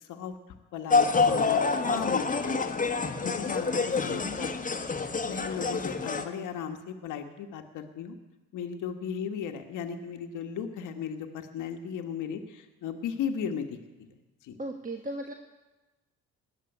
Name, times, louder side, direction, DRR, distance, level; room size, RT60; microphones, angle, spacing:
voice 1, 0.7-2.6 3.2-4.6 5.3-8.2 8.5-13.7 14.0-14.1 14.5-14.6, left 7 dB, 85° left, 5 dB, 1.4 m, -36 dB
sound 1, 0.9-6.2, left 4 dB, 25° left, 1.4 m, -27 dB
voice 2, 14.6-15.3, right 1 dB, 25° right, 3 dB, 1.4 m, -36 dB
18.5 x 7.4 x 9.8 m, 1.2 s
cardioid pair, 90°, 30 cm